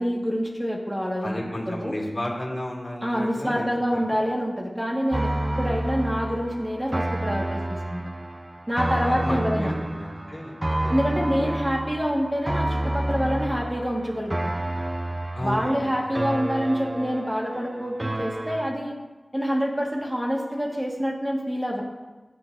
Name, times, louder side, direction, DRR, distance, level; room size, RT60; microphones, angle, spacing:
voice 1, 0.0-1.4 1.7-1.9 3.0-8.0 8.7-9.7 10.9-14.6 15.4-18.9 19.3-21.8, equal, 15° right, -2 dB, 1.7 m, -26 dB
voice 2, 1.2-4.0 8.9-11.0 11.3-11.6 15.3-16.3, left 1 dB, 35° left, -3 dB, 2.6 m, -33 dB
sound 1, 5.1-18.7, right 1 dB, 30° right, 0.4 m, -29 dB
14.5 x 8.9 x 2.7 m, 1.2 s
wide cardioid pair, 70°, 0 cm